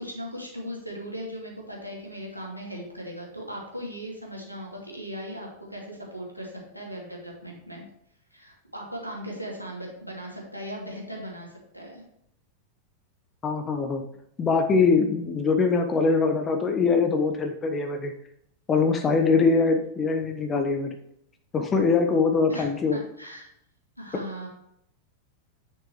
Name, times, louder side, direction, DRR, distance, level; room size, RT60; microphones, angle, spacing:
voice 1, 0.0-7.8 8.3-12.0 22.5-23.5 24.0-24.5, equal, 90° left, -2 dB, 2.6 m, -38 dB
voice 2, 13.4-14.0 14.4-18.1 18.7-20.9 21.5-23.0, left 4 dB, 20° left, 6 dB, 1.0 m, -23 dB
9.8 x 6.7 x 3.1 m, 0.75 s
figure-of-eight pair, 90°, 0 cm